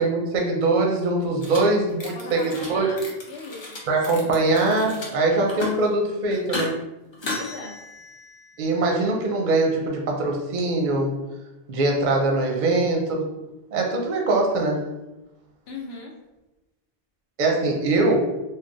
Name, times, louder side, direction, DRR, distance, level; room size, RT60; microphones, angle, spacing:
voice 1, 0.0-2.9 3.9-6.7 8.6-11.1 11.7-13.3 13.7-14.8 17.4-18.2, right 2 dB, 55° right, 0 dB, 0.6 m, -22 dB
sound 1, 1.4-1.6 1.9-2.7 3.0-5.1 5.4-5.9 6.3-6.7 7.1-8.6, left 2 dB, 35° left, 0.5 m, -35 dB
voice 2, 2.1-3.8 7.3-7.7 15.7-16.1, left 3 dB, 80° left, -2 dB, 0.9 m, -38 dB
3.2 x 2.2 x 2.5 m, 0.98 s
omnidirectional pair, 1.1 m